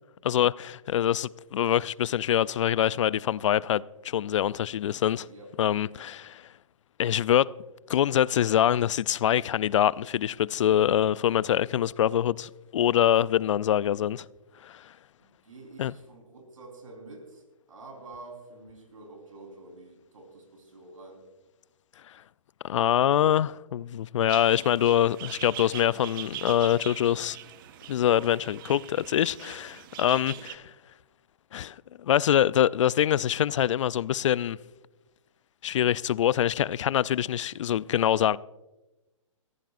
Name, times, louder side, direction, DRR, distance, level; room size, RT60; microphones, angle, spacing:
voice 1, 0.2-5.3 5.6-6.4 7.0-7.5 7.9-14.3 14.6-14.9 15.8-15.9 22.6-27.4 27.9-30.6 31.5-34.6 35.6-38.4, left 10 dB, 65° left, 0.4 m, -24 dB
voice 2, 5.1-5.5 15.2-21.2 30.1-30.4, right 2 dB, 80° right, 4.1 m, -48 dB
sound 1, 24.3-30.6, right 14 dB, 40° right, 0.6 m, -43 dB
20.5 x 15.0 x 2.5 m
hypercardioid pair, 140°, 17 cm